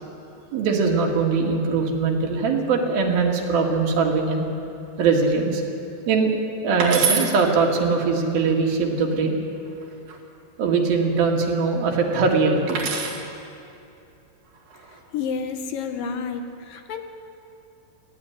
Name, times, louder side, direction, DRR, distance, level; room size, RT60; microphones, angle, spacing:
voice 1, 0.5-4.5 5.0-5.6 6.1-6.3 6.6-9.4 10.6-12.8, right 4 dB, 75° right, 0 dB, 3.7 m, -21 dB
sound 1, 6.8-7.3 9.6-10.2 12.7-13.2 14.5-15.0, right 5 dB, 60° right, 3.3 m, -26 dB
voice 2, 15.1-17.0, left 6 dB, 75° left, 6 dB, 2.5 m, -30 dB
18.0 x 14.5 x 10.0 m, 2.7 s
omnidirectional pair, 4.4 m